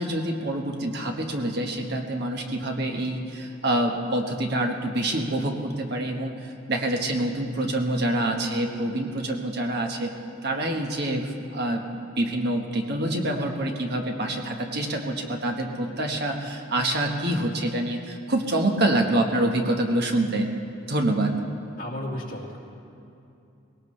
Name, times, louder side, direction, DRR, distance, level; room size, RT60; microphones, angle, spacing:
voice 1, 0.0-10.1 10.4-11.8 12.2-20.5 20.9-21.4, right 1 dB, 60° right, 3 dB, 1.4 m, -26 dB
voice 2, 21.8-22.6, left 1 dB, 50° left, -4 dB, 2.7 m, -34 dB
20.0 x 18.0 x 3.3 m, 2.6 s
head